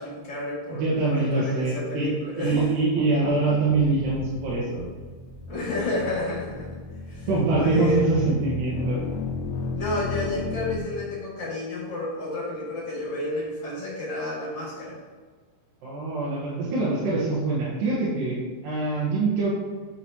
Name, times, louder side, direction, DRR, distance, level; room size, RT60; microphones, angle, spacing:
voice 1, 0.0-2.7 5.5-6.8 7.1-7.3 7.5-8.0 9.7-15.0, left 1 dB, 45° left, -6 dB, 2.6 m, -31 dB
voice 2, 0.7-4.9 7.3-9.0 15.8-19.5, right 3 dB, 65° right, -8 dB, 3.0 m, -24 dB
sound 1, 3.7-10.8, left 3 dB, 90° left, 2.7 m, -34 dB
10.0 x 6.3 x 3.0 m, 1.4 s
omnidirectional pair, 4.6 m